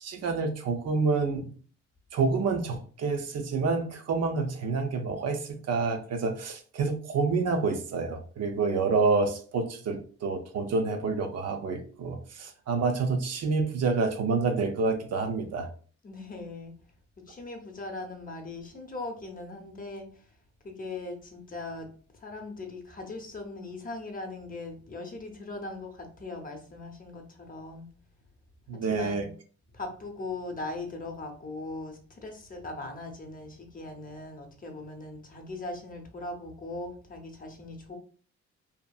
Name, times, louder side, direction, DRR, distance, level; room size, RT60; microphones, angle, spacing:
voice 1, 0.0-1.5 2.1-15.7 28.7-29.2, right 4 dB, 55° right, 6 dB, 0.5 m, -28 dB
voice 2, 16.0-16.8 17.2-20.2 20.6-21.9 22.1-27.9 28.7-29.3 29.7-38.0, left 2 dB, 30° left, 4 dB, 0.7 m, -40 dB
2.8 x 2.4 x 2.3 m, 0.43 s
cardioid pair, 90°, 30 cm